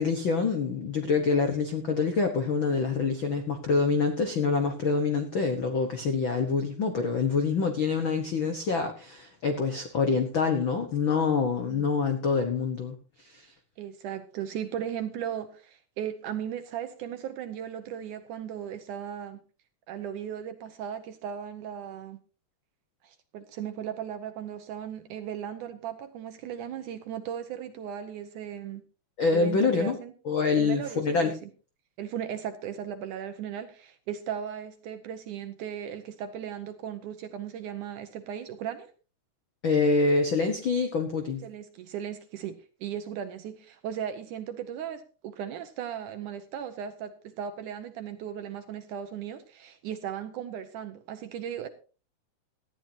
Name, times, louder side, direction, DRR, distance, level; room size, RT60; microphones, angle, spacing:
voice 1, 0.0-13.5 29.2-30.0 30.2-31.3 39.6-41.4, left 4 dB, 80° left, 1.1 m, -26 dB
voice 2, 13.8-19.4 19.9-22.2 23.0-28.8 29.3-30.1 30.6-31.5 32.0-38.9 41.4-51.7, right 9 dB, 70° right, 2.0 m, -37 dB
18.5 x 13.5 x 2.8 m
omnidirectional pair, 4.4 m